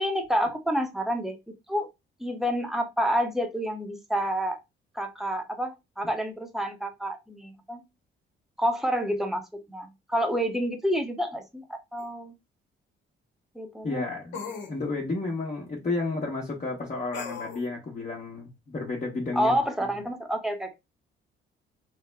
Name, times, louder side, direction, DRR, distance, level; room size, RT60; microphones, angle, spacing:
voice 1, 0.0-1.4 1.7-1.9 2.2-4.6 5.0-7.8 8.6-9.4 9.7-11.6 11.9-12.3 13.5-14.1 19.4-20.7, equal, ahead, 0.8 m, -28 dB
sound 1, 12.0-12.1 14.3-14.7 17.1-17.7, left 5 dB, 70° left, 1.1 m, -37 dB
voice 2, 13.8-14.4 14.7-19.6, left 3 dB, 35° left, 1.1 m, -31 dB
3.4 x 2.1 x 3.4 m
cardioid pair, 90°, 20 cm